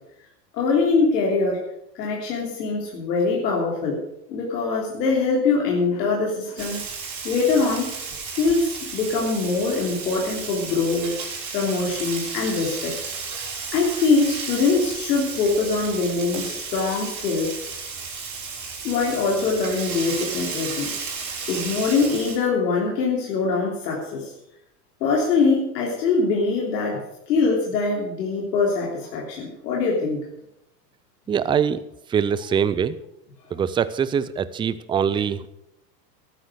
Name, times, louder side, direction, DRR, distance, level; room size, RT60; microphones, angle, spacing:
voice 1, 0.5-1.6 1.9-4.0 4.3-6.8 7.2-7.9 8.4-11.1 11.5-12.9 13.3-17.5 18.8-20.9 21.5-24.3 25.0-30.2, left 4 dB, 80° left, -2 dB, 3.3 m, -23 dB
Frying (food), 6.6-22.4, right 5 dB, 35° right, 4.6 m, -33 dB
voice 2, 31.3-31.8 32.1-33.0 33.5-35.5, right 7 dB, 10° right, 16 dB, 0.4 m, -23 dB
13.0 x 10.0 x 6.5 m, 0.82 s
hypercardioid pair, 105°, 49 cm